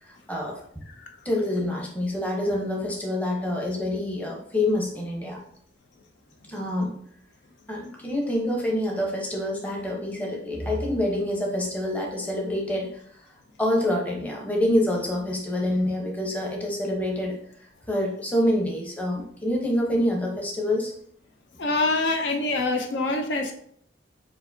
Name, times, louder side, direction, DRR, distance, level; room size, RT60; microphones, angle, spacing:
voice 1, 0.0-0.6 1.2-5.4 6.5-7.0 7.7-13.3 13.6-20.9, left 1 dB, 10° left, -1 dB, 0.8 m, -27 dB
voice 2, 21.6-23.5, left 2 dB, 60° left, 4 dB, 0.5 m, -25 dB
6.7 x 2.6 x 2.7 m, 0.63 s
head